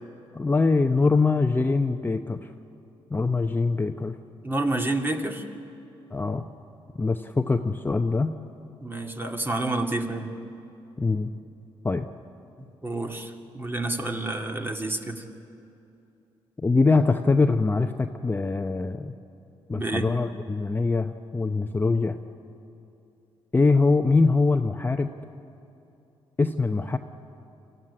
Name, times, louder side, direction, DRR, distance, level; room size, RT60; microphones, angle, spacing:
voice 1, 0.3-2.5 3.1-4.2 6.1-6.5 7.0-8.3 11.0-11.3 11.8-12.1 16.6-19.1 19.7-22.2 23.5-25.1 26.4-27.0, left 3 dB, 20° left, 6 dB, 0.8 m, -23 dB
voice 2, 4.4-5.4 8.8-10.3 12.6-15.2 19.7-20.1, right 2 dB, 20° right, 4 dB, 2.2 m, -29 dB
24.5 x 15.0 x 9.8 m, 2.7 s
cardioid pair, 75°, 11 cm